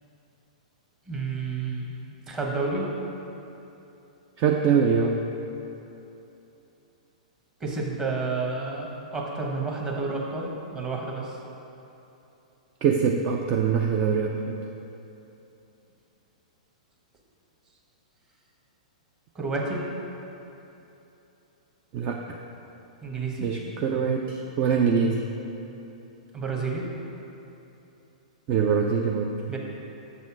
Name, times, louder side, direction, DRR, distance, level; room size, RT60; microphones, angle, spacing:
voice 1, 1.1-1.9 2.3-2.9 7.6-11.4 19.3-19.8 23.0-23.5 26.3-26.9 29.5-29.6, right 3 dB, 20° right, -1 dB, 1.2 m, -30 dB
voice 2, 4.4-5.2 12.8-14.6 21.9-22.4 23.4-25.2 28.5-29.4, right 6 dB, 35° right, 2 dB, 0.4 m, -23 dB
6.6 x 4.1 x 6.0 m, 2.9 s
hypercardioid pair, 115°, 4 cm